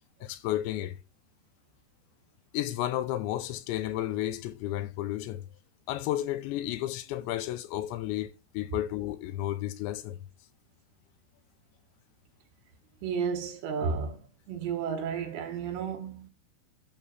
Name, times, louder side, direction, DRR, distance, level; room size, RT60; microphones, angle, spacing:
voice 1, 0.2-1.0 2.5-5.4 5.9-10.2, left 13 dB, 80° left, 2.9 m, -32 dB
voice 2, 13.0-14.2 14.5-16.3, right 6 dB, 75° right, 3.3 m, -32 dB
12.0 x 4.0 x 4.0 m
omnidirectional pair, 5.2 m